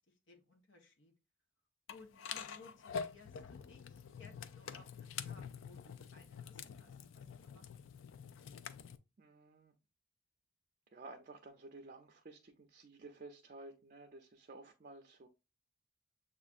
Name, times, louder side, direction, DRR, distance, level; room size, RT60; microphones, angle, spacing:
voice 1, 0.1-1.1 1.9-7.7, left 3 dB, 65° left, 0.9 m, -61 dB
sound 1, 1.9-9.0, left 6 dB, 85° left, 0.4 m, -46 dB
voice 2, 9.2-9.7 10.9-15.3, right 2 dB, 45° right, 0.5 m, -53 dB
7.0 x 2.5 x 2.4 m
head